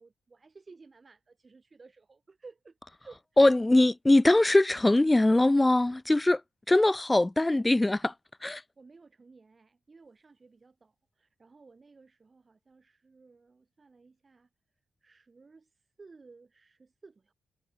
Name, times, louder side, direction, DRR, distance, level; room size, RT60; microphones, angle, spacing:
voice 1, 0.0-3.4 8.8-14.5 15.0-17.3, right 4 dB, 25° right, 7.8 m, -55 dB
voice 2, 3.4-6.4 6.7-8.1 8.4-8.6, left 2 dB, 10° left, 0.5 m, -22 dB
wide cardioid pair, 165°, 0 cm